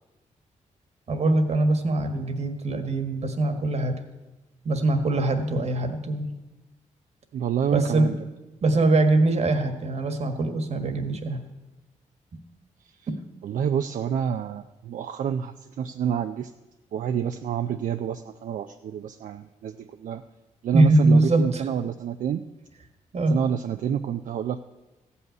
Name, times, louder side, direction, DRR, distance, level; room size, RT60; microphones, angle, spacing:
voice 1, 1.1-3.9 4.7-6.3 7.7-8.1 8.6-11.4 20.7-21.6 23.1-23.4, right 2 dB, 55° right, 7 dB, 1.6 m, -22 dB
voice 2, 7.3-8.2 13.4-16.5 16.9-20.2 20.6-22.4 23.3-24.6, right 8 dB, 75° right, 8 dB, 0.5 m, -28 dB
15.0 x 5.6 x 9.3 m, 1.1 s
cardioid pair, 85°, 13 cm